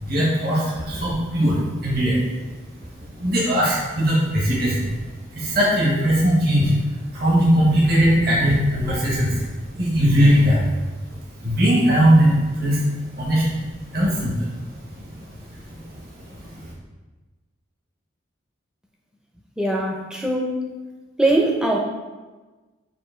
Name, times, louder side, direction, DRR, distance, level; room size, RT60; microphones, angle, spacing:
voice 1, 0.0-2.2 3.2-4.9 5.3-6.7 7.1-9.4 9.7-10.7 11.4-12.8 13.2-13.5 13.9-14.5 15.9-16.0, equal, 50° right, -5 dB, 1.4 m, -19 dB
voice 2, 19.6-20.6 21.2-21.8, right 1 dB, 5° right, 0 dB, 0.6 m, -21 dB
7.6 x 2.8 x 4.4 m, 1.2 s
head